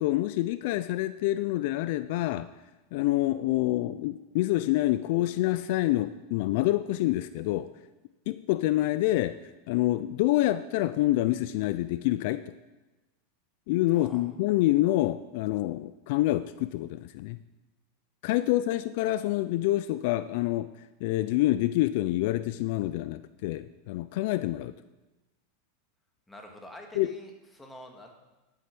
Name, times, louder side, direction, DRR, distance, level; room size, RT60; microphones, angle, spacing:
voice 1, 0.0-2.5 2.9-7.7 8.3-9.4 9.7-12.4 13.7-17.4 18.2-20.7 21.0-24.7 27.0-27.1, left 16 dB, 60° left, 13 dB, 0.4 m, -27 dB
voice 2, 13.9-14.3 26.3-28.2, left 1 dB, 10° left, 2 dB, 1.8 m, -47 dB
11.0 x 8.5 x 6.0 m, 1.1 s
supercardioid pair, 135°, 0 cm